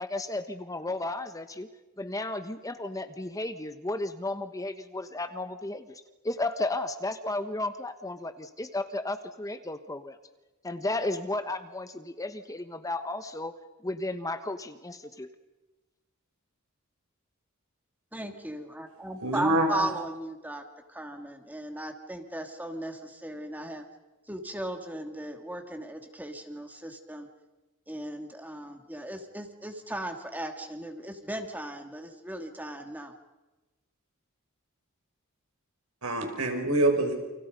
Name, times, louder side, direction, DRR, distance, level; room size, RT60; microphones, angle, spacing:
voice 1, 0.0-1.7 2.0-10.2 10.6-13.5 13.8-15.3, left 2 dB, 15° left, 9 dB, 1.2 m, -34 dB
voice 2, 18.1-20.6 20.9-23.8 24.3-27.3 27.9-33.1, right 1 dB, 10° right, 4 dB, 2.7 m, -37 dB
voice 3, 19.2-19.9 36.0-37.1, right 1 dB, 75° right, 4 dB, 5.7 m, -25 dB
29.5 x 28.5 x 5.3 m, 1.1 s
head